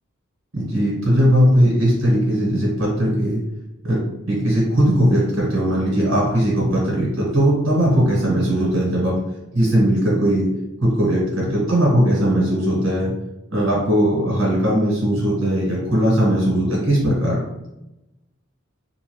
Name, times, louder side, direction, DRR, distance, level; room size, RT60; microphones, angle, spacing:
voice 1, 0.5-3.4 3.8-4.0 4.3-9.2 9.5-10.5 10.8-13.1 13.5-17.4, equal, 80° right, -5 dB, 1.3 m, -19 dB
2.8 x 2.5 x 3.1 m, 0.93 s
head